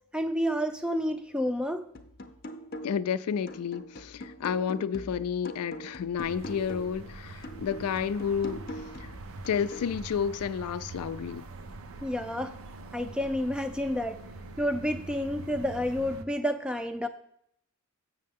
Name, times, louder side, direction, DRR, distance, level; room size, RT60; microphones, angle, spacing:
voice 1, 0.1-1.9 12.0-12.5 12.9-14.2 14.6-17.1, equal, 5° right, 0.4 m, -29 dB
sound 1, 1.9-3.1 3.5-7.0 7.4-9.9, equal, 45° left, 0.7 m, -43 dB
voice 2, 2.8-9.1 9.5-11.5, left 7 dB, 90° left, 0.4 m, -31 dB
sound 2, 6.2-16.2, right 3 dB, 65° right, 0.5 m, -44 dB
7.6 x 6.3 x 3.5 m
head